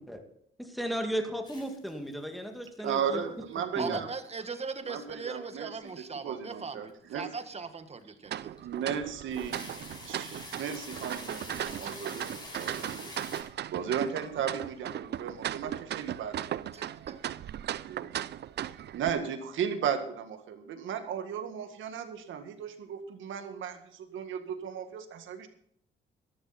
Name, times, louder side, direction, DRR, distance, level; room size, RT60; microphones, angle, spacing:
voice 1, 0.6-3.2 3.8-4.0, equal, ahead, 4 dB, 2.3 m, -35 dB
sound 1, 1.4-2.4 2.6-3.1 3.5-4.1 4.5-4.6 5.4-5.9 6.2-6.4 6.9-7.0 7.4-7.5 8.0-8.1 8.6-8.8 9.1-13.4, left 2 dB, 20° left, 5.9 m, -45 dB
voice 2, 2.8-4.1 4.8-5.7 6.2-7.3 8.6-9.6 10.1-13.1 13.7-16.9 17.9-18.1 18.6-25.5, right 8 dB, 75° right, 7 dB, 1.9 m, -35 dB
voice 3, 3.8-8.6 16.7-17.2, right 4 dB, 30° right, 9 dB, 1.6 m, -39 dB
sound 2, 8.3-19.1, right 11 dB, 60° right, 0.5 m, -37 dB
13.5 x 12.5 x 4.3 m, 0.68 s
cardioid pair, 90°, 20 cm